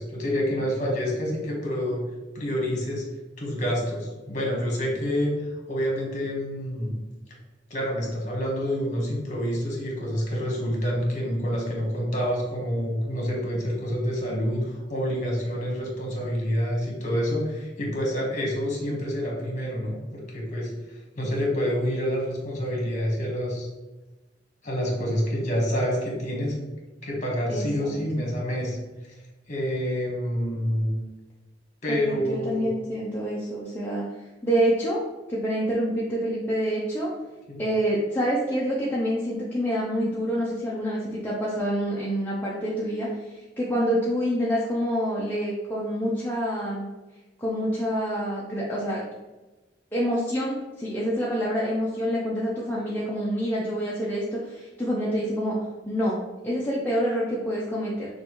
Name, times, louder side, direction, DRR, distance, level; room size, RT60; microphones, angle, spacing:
voice 1, 0.0-2.0 2.3-3.1 3.4-5.3 5.7-6.9 7.7-23.7 24.6-26.5 27.0-28.8 29.5-31.0 31.8-32.7 37.5-37.6, equal, 40° left, -2 dB, 1.3 m, -27 dB
voice 2, 27.5-27.9 31.9-34.0 34.4-35.0 35.3-37.1 37.6-46.8 47.4-49.0 49.9-55.6 55.9-58.1, equal, 10° left, -7 dB, 0.6 m, -27 dB
5.8 x 2.6 x 3.0 m, 1.1 s
head